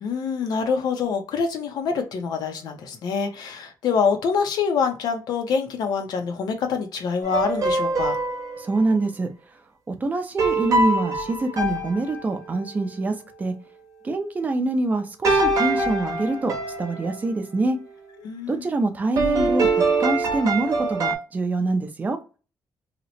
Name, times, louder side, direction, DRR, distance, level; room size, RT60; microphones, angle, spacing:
voice 1, 0.0-8.2 18.2-18.6, left 5 dB, 75° left, 5 dB, 0.6 m, -25 dB
sound 1, 7.2-8.8 10.4-12.6 15.2-17.3 19.2-21.1, right 2 dB, 50° right, 0.8 m, -23 dB
voice 2, 8.6-9.3 9.9-13.5 14.0-17.8 18.5-19.7 20.0-22.2, right 2 dB, 20° right, 6 dB, 0.5 m, -25 dB
2.8 x 2.0 x 4.0 m, 0.33 s
wide cardioid pair, 165°, 7 cm